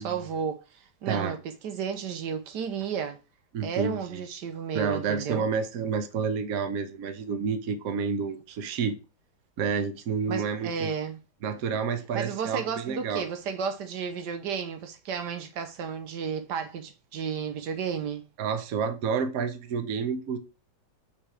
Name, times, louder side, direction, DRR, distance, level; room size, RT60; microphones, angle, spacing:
voice 1, 0.0-1.4 1.6-3.2 3.6-5.5 10.3-11.2 12.1-18.2, right 6 dB, 80° right, 1.4 m, -33 dB
voice 2, 3.5-4.2 4.7-9.0 9.6-10.9 11.4-13.3 18.4-20.4, right 6 dB, 60° right, 1.2 m, -29 dB
5.6 x 3.6 x 4.9 m
omnidirectional pair, 1.8 m